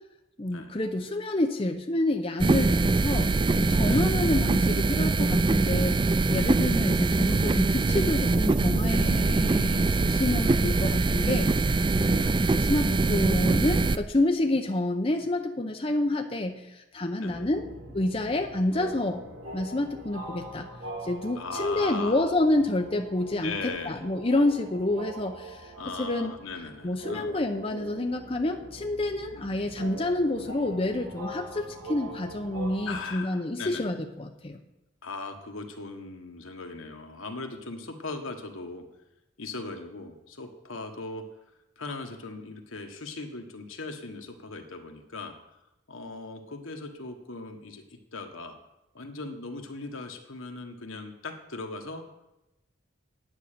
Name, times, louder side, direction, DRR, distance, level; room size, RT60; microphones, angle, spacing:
voice 1, 0.4-6.0 6.3-12.3 12.6-17.6 17.9-19.2 19.5-20.7 21.0-25.7 26.0-26.3 26.8-34.6, left 1 dB, 25° left, 4 dB, 0.7 m, -28 dB
sound 1, 2.4-14.0, right 3 dB, 25° right, 0.3 m, -23 dB
voice 2, 3.0-4.0 6.7-7.0 12.1-12.4 17.2-17.5 21.3-22.3 23.4-24.0 25.8-27.3 29.3-29.6 32.9-34.0 35.0-38.8 39.4-41.2 41.8-45.3 45.9-47.8 48.1-48.5 48.9-52.0, left 3 dB, 80° left, 5 dB, 1.4 m, -39 dB
sound 2, 17.3-33.0, right 1 dB, 75° right, 1.9 m, -43 dB
9.5 x 8.8 x 6.7 m, 0.93 s
head